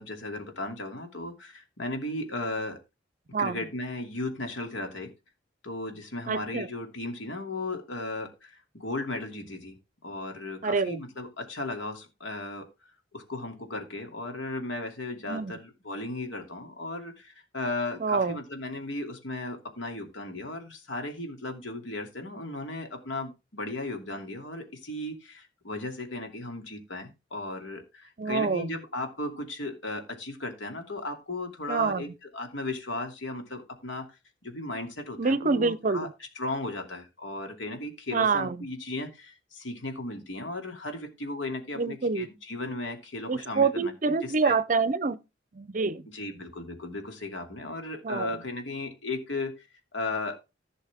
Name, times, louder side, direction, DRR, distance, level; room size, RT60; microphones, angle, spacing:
voice 1, 0.0-2.8 3.4-5.1 5.6-9.8 10.0-12.7 13.1-32.1 32.3-34.2 34.4-36.1 36.3-44.5 46.1-49.7 49.9-50.4, left 2 dB, 75° left, 2.8 m, -36 dB
voice 2, 6.3-6.7 10.6-11.0 15.3-15.5 18.0-18.4 28.2-28.8 31.7-32.0 35.2-36.1 38.1-38.6 41.8-42.3 43.3-45.2 45.5-46.0 48.0-48.3, right 4 dB, 40° right, 0.6 m, -26 dB
15.5 x 6.3 x 3.5 m
head